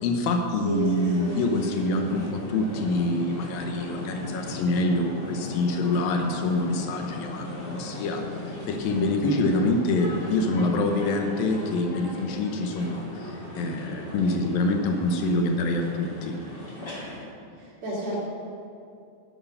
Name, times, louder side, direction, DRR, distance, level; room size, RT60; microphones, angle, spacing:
voice 1, 0.0-16.4, left 2 dB, 80° left, 4 dB, 2.1 m, -26 dB
voice 2, 0.6-1.4 17.5-18.2, right 1 dB, 30° right, -8 dB, 4.1 m, -32 dB
sound 1, 0.7-17.2, left 2 dB, 30° left, 2.6 m, -37 dB
12.5 x 11.5 x 5.5 m, 2.5 s
omnidirectional pair, 5.4 m